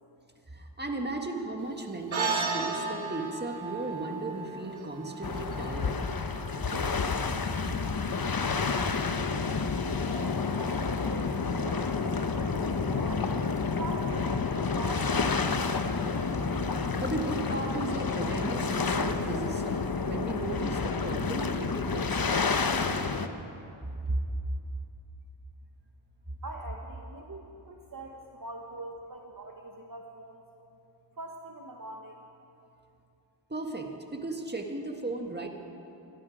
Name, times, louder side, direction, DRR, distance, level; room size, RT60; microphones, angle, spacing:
voice 1, 0.5-6.0 17.0-22.3 24.0-24.2 33.5-35.5, right 2 dB, 20° right, 3 dB, 1.8 m, -36 dB
sound 1, 2.1-6.8, right 4 dB, 75° right, 1.7 m, -34 dB
sound 2, 5.2-23.3, left 4 dB, 45° left, 0.9 m, -29 dB
voice 2, 10.0-13.3 13.7-16.0 26.4-30.4 31.2-32.2, right 2 dB, 45° right, 2 dB, 1.3 m, -43 dB
21.0 x 12.5 x 5.1 m, 2.7 s
cardioid pair, 40°, 47 cm